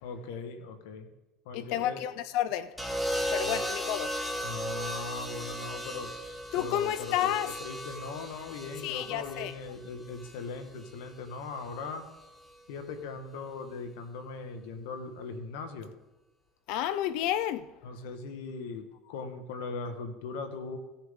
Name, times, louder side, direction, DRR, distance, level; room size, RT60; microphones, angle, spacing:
voice 1, 0.0-1.1 1.4-2.0 3.4-3.6 4.4-6.1 6.6-7.3 7.6-12.1 12.7-15.9 17.8-20.8, left 4 dB, 85° left, 1.5 m, -39 dB
voice 2, 1.5-2.7 3.3-4.1 6.5-7.5 8.8-9.5 16.7-17.7, left 11 dB, 70° left, 0.6 m, -30 dB
sound 1, 2.8-10.9 12.2-12.5, equal, ahead, 1.5 m, -36 dB
16.5 x 7.2 x 3.8 m
supercardioid pair, 110°, 0 cm